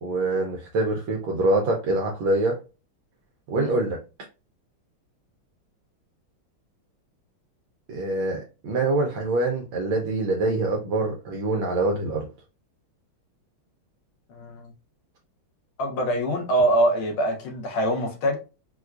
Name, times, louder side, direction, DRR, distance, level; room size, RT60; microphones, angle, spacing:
voice 1, 0.0-2.6 3.5-4.0 7.9-12.2, right 2 dB, 75° right, 0 dB, 1.3 m, -25 dB
voice 2, 14.3-14.7 15.8-18.4, right 1 dB, 80° left, 1 dB, 1.7 m, -24 dB
4.4 x 2.3 x 2.4 m, 0.32 s
omnidirectional pair, 2.3 m